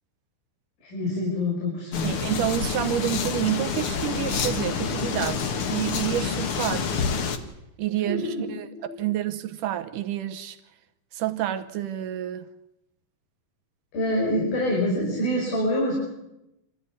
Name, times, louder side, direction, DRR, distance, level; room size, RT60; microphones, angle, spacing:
voice 1, 0.8-2.1 8.0-8.4 8.7-8.9 13.9-15.9, left 1 dB, 85° left, 7.7 m, -26 dB
sound 1, 1.9-7.4, left 6 dB, 50° left, 1.9 m, -28 dB
voice 2, 2.0-6.9 7.8-8.7 9.0-10.6 11.1-12.5, right 12 dB, 70° right, 2.4 m, -29 dB
26.0 x 14.5 x 9.9 m
omnidirectional pair, 4.1 m